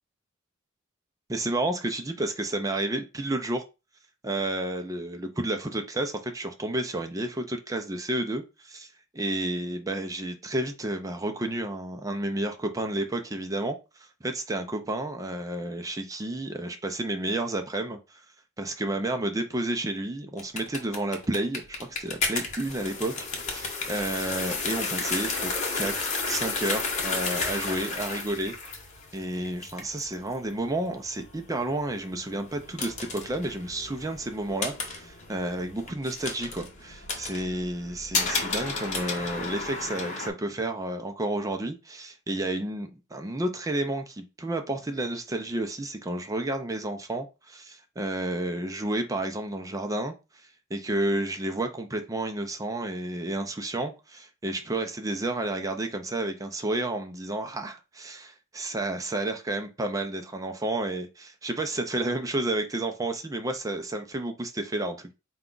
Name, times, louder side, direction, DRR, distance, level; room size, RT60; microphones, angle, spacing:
voice 1, 1.3-3.6 4.2-13.8 14.2-18.2 18.6-28.5 29.1-50.1 50.7-65.1, right 1 dB, 15° right, 0.4 m, -31 dB
sound 1, 20.4-40.3, left 4 dB, 35° left, 1.0 m, -33 dB
4.7 x 2.3 x 3.8 m
head